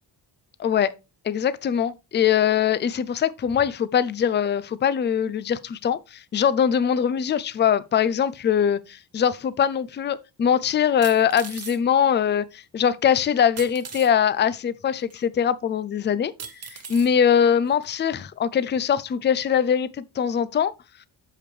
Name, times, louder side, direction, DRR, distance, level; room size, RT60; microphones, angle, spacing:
voice 1, 0.6-0.9 1.2-16.3 16.7-19.9 20.2-20.7, left 8 dB, 25° left, 0.4 m, -22 dB
sound 1, 9.7-9.8 11.0-11.8 13.6-14.1 15.1-15.2 16.4-17.1 17.8-17.9, right 6 dB, 35° right, 0.9 m, -38 dB
8.5 x 6.8 x 3.2 m
wide cardioid pair, 165°, 42 cm